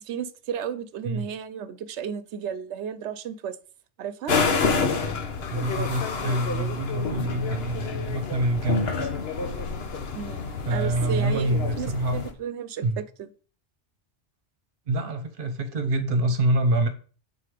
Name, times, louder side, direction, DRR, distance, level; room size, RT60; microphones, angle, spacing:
voice 1, 0.1-3.6 4.0-4.4 10.1-10.4 10.7-13.3, right 7 dB, 80° right, 0.9 m, -33 dB
sound 1, 4.3-12.3, left 4 dB, 65° left, 1.2 m, -28 dB
voice 2, 5.5-9.1 10.6-12.2 12.8-13.0 14.9-16.9, right 2 dB, 50° right, 1.1 m, -26 dB
7.6 x 4.2 x 5.0 m
omnidirectional pair, 1.2 m